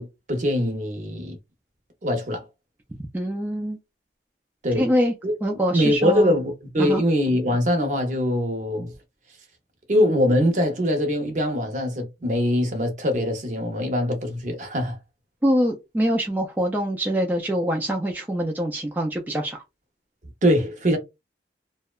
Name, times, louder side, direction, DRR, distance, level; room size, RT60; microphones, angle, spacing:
voice 1, 0.0-1.4 2.0-2.4 4.6-4.9 5.2-5.3 5.7-8.9 9.9-15.0 20.4-21.0, equal, 45° right, 0.7 m, -23 dB
voice 2, 3.1-3.8 4.7-5.1 5.4-6.3 6.8-7.0 15.4-19.6, equal, 10° right, 0.3 m, -24 dB
2.7 x 2.1 x 2.3 m
head